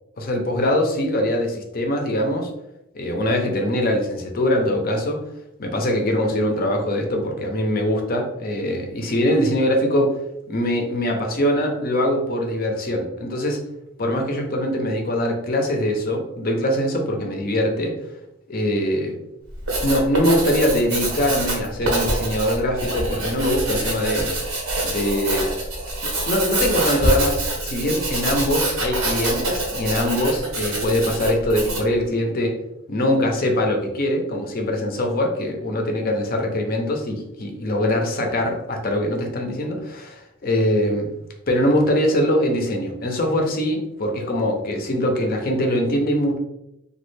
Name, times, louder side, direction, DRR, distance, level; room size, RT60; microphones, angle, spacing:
voice 1, 0.2-2.5 2.9-5.2 5.6-10.2 10.5-13.6 14.0-18.0 18.5-19.1 19.8-24.3 24.8-25.5 26.3-32.6 32.9-41.1 41.5-46.4, left 1 dB, 45° left, 3 dB, 0.6 m, -22 dB
Writing, 19.5-31.9, right 2 dB, 90° right, 1.1 m, -25 dB
3.1 x 2.3 x 3.2 m, 0.85 s
head